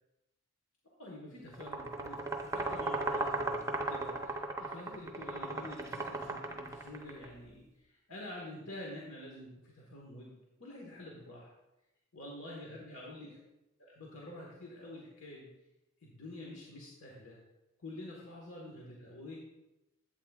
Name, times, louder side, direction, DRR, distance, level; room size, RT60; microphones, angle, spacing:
voice 1, 1.0-11.5 12.1-13.4 13.8-15.5 16.0-17.4 17.8-19.4, left 1 dB, 70° left, -3 dB, 1.4 m, -48 dB
sound 1, 1.5-7.3, right 2 dB, 15° right, 0.7 m, -36 dB
11.5 x 8.4 x 2.4 m, 0.97 s
head